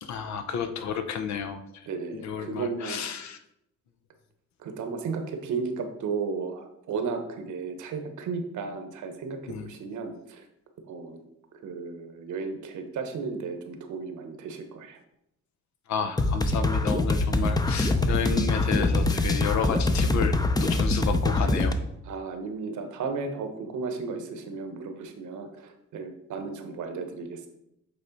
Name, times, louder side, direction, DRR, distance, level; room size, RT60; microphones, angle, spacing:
voice 1, 0.0-1.9 2.1-3.4 9.5-9.7 15.9-21.8, left 7 dB, 65° left, 9 dB, 0.7 m, -31 dB
voice 2, 1.9-3.1 4.6-10.4 10.9-11.2 11.6-15.0 22.1-27.5, right 4 dB, 75° right, 6 dB, 1.0 m, -34 dB
sound 1, 16.2-21.7, left 2 dB, 15° left, 0.5 m, -24 dB
8.0 x 3.4 x 4.0 m, 0.81 s
cardioid pair, 90°, 30 cm